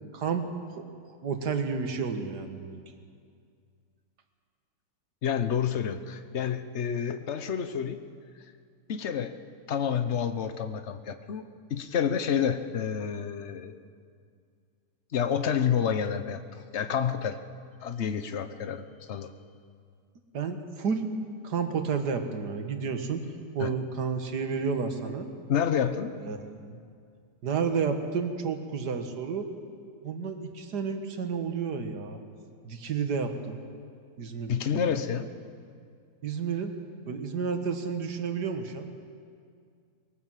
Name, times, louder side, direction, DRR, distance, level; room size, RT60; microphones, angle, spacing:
voice 1, 0.1-0.5 0.8-0.9 1.2-2.8 20.3-21.0 21.4-23.2 23.6-25.3 26.2-26.8 27.4-29.5 30.0-32.2 32.6-33.6 34.2-35.0 36.2-36.7 37.1-38.9, right 5 dB, 90° right, 6 dB, 2.0 m, -31 dB
voice 2, 5.2-8.0 8.9-9.3 9.7-11.4 11.7-13.7 15.1-17.4 17.8-19.3 23.6-23.7 25.5-26.1 34.5-35.3, left 8 dB, 50° left, 10 dB, 1.1 m, -29 dB
22.0 x 18.5 x 7.6 m, 2.2 s
omnidirectional pair, 1.7 m